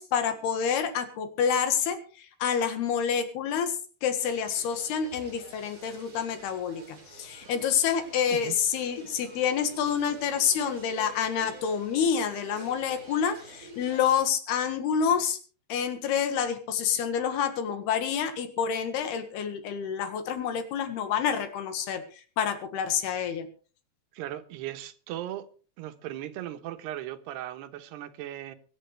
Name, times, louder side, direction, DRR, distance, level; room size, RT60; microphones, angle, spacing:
voice 1, 0.0-3.7 4.0-15.4 15.7-23.5, left 7 dB, 75° left, 3.5 m, -28 dB
sound 1, 4.2-14.2, right 3 dB, 30° right, 5.0 m, -49 dB
voice 2, 24.1-25.5 25.8-28.6, right 13 dB, 80° right, 3.2 m, -37 dB
25.0 x 11.0 x 3.3 m
omnidirectional pair, 4.8 m